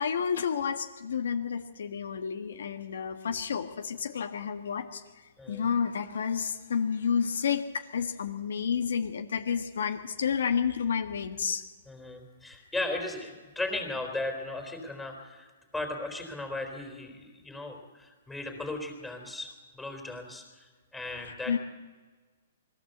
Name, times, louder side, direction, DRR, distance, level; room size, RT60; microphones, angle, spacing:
voice 1, 0.0-5.0 5.5-11.6 21.3-21.6, left 7 dB, 80° left, 5 dB, 1.5 m, -30 dB
voice 2, 11.9-15.5 15.7-20.7 20.9-21.6, left 2 dB, 5° left, 3 dB, 3.7 m, -36 dB
22.0 x 15.5 x 8.0 m, 1.4 s
hypercardioid pair, 160°, 0 cm